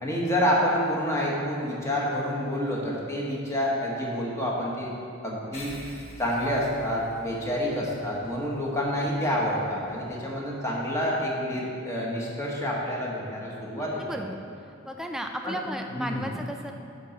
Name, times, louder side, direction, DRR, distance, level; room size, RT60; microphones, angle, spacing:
voice 1, 0.0-4.9 5.2-5.7 6.2-14.0 15.4-15.6 15.9-16.3, equal, 15° left, -4 dB, 1.3 m, -28 dB
sound 1, 5.5-10.4, left 1 dB, 30° left, 0.9 m, -48 dB
voice 2, 13.8-14.4 14.8-16.7, equal, ahead, 4 dB, 0.3 m, -35 dB
9.5 x 3.9 x 7.1 m, 2.6 s
head